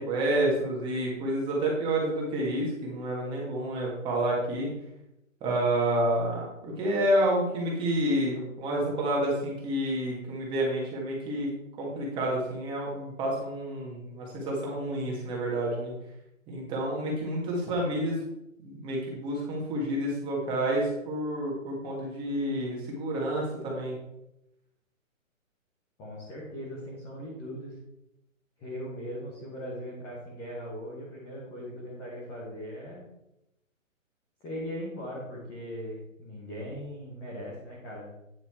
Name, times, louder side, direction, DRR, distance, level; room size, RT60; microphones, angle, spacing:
voice 1, 0.0-4.7 5.4-11.5 11.8-15.9 16.5-18.2 18.6-23.9, right 1 dB, 10° right, -3 dB, 1.8 m, -29 dB
voice 2, 26.0-27.8 28.6-33.0 34.4-38.1, equal, 5° left, -6 dB, 0.8 m, -39 dB
9.6 x 5.6 x 4.5 m, 0.86 s
hypercardioid pair, 165°, 41 cm